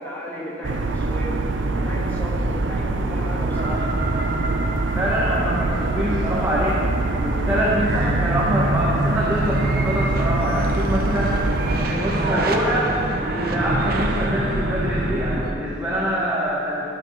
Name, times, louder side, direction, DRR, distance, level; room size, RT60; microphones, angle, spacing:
voice 1, 0.0-1.4 1.7-3.9, equal, 10° left, -5 dB, 1.6 m, -34 dB
sound 1, 0.6-11.9, right 2 dB, 80° right, 0.7 m, -24 dB
sound 2, 3.5-15.5, right 1 dB, 50° right, 0.9 m, -26 dB
voice 2, 4.9-6.8 7.2-11.3 11.7-12.9 13.2-16.9, equal, 15° right, -8 dB, 1.3 m, -25 dB
13.0 x 10.5 x 3.2 m, 2.9 s
head